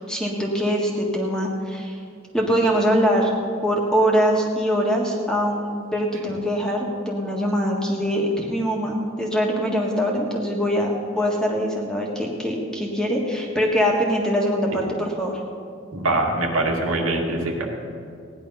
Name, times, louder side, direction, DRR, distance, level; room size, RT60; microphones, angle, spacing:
voice 1, 0.1-2.0 2.3-3.3 3.6-15.4, equal, 5° left, -2 dB, 1.7 m, -23 dB
voice 2, 15.9-17.6, right 2 dB, 85° right, 0 dB, 2.3 m, -23 dB
16.5 x 10.5 x 5.7 m, 2.4 s
head